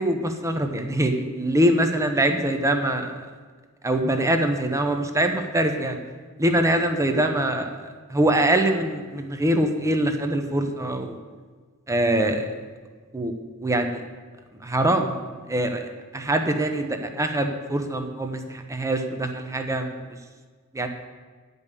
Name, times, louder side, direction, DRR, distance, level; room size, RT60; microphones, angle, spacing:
voice 1, 0.0-3.2 3.8-6.0 6.4-11.2 11.9-12.5 13.1-14.0 14.6-15.8 16.1-20.2 20.7-20.9, right 1 dB, 15° right, 5 dB, 0.8 m, -24 dB
10.0 x 5.4 x 8.2 m, 1.5 s
head